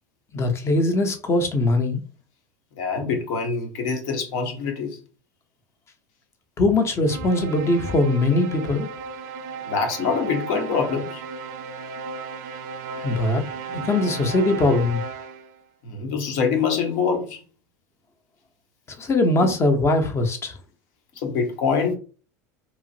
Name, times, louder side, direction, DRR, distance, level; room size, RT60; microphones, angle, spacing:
voice 1, 0.3-2.0 6.6-8.9 13.0-13.4 13.7-15.0 19.0-20.6, left 2 dB, 30° left, 0.7 m, -21 dB
voice 2, 2.8-5.0 9.7-11.2 15.8-17.4 21.2-21.9, left 5 dB, 65° left, 1.0 m, -25 dB
sound 1, 7.1-15.6, right 5 dB, 70° right, 0.4 m, -35 dB
2.9 x 2.4 x 2.7 m
hypercardioid pair, 95°, 10 cm